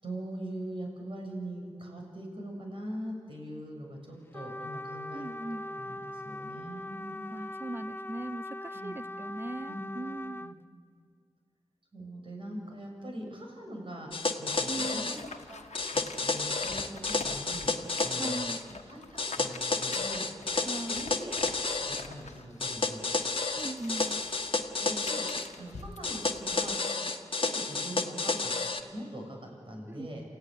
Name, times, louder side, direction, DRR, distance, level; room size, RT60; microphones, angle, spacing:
voice 1, 0.0-5.3 5.7-7.3 8.7-8.9 9.7-9.8 10.4-10.5 11.9-14.1 14.4-15.6 15.9-17.7 18.0-18.4 18.9-20.3 20.9-23.0 24.8-25.3 25.6-26.7 27.4-28.5 28.9-30.2, right 1 dB, 50° right, 0 dB, 7.1 m, -42 dB
Trumpet, 4.3-10.5, left 1 dB, 20° left, 0.6 m, -41 dB
voice 2, 5.1-5.6 7.3-10.5 14.7-15.2 18.1-18.6 20.7-21.1 23.6-24.2 29.9-30.1, right 2 dB, 20° right, 15 dB, 0.7 m, -39 dB
sound 1, 14.1-15.2 15.7-18.6 19.2-22.0 22.6-25.5 26.0-28.8, left 3 dB, 50° left, 1.6 m, -31 dB
sound 2, 14.5-26.8, left 4 dB, 75° left, 1.4 m, -47 dB
28.0 x 15.5 x 9.8 m, 2.1 s
wide cardioid pair, 60°, 12 cm